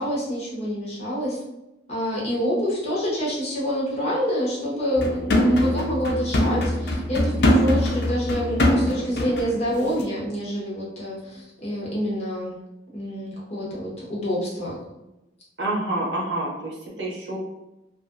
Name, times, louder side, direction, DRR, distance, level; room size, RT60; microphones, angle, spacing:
voice 1, 0.0-1.4 1.9-12.6 12.9-14.8, equal, 35° left, -6 dB, 0.9 m, -27 dB
sound 1, 5.0-9.6 9.9-10.0, left 1 dB, 60° left, 0.5 m, -22 dB
voice 2, 15.6-17.4, right 1 dB, 85° right, -4 dB, 0.9 m, -28 dB
2.6 x 2.5 x 2.5 m, 0.94 s
head